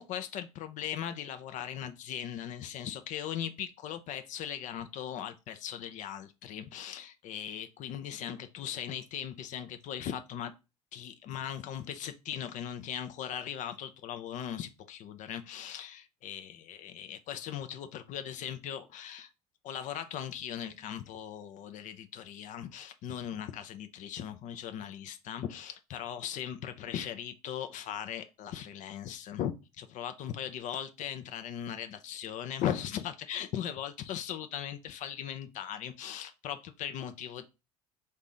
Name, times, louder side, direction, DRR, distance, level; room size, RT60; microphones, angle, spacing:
voice 1, 0.0-10.5 10.9-19.3 19.6-37.4, left 10 dB, 40° left, 0.5 m, -39 dB
3.8 x 2.7 x 3.9 m
figure-of-eight pair, 65°, 19 cm